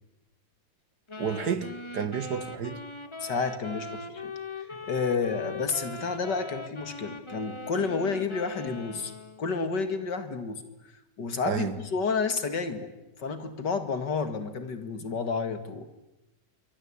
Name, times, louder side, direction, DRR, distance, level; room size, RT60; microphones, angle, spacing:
sound 1, 1.1-9.5, left 3 dB, 15° left, 1.6 m, -41 dB
voice 1, 1.2-2.8 11.5-11.8, right 6 dB, 60° right, 13 dB, 2.1 m, -31 dB
voice 2, 3.2-4.3 4.6-9.1 9.4-10.6 11.2-12.9 13.2-15.9, left 4 dB, 65° left, 10 dB, 2.7 m, -30 dB
26.5 x 24.0 x 8.8 m, 0.99 s
omnidirectional pair, 2.0 m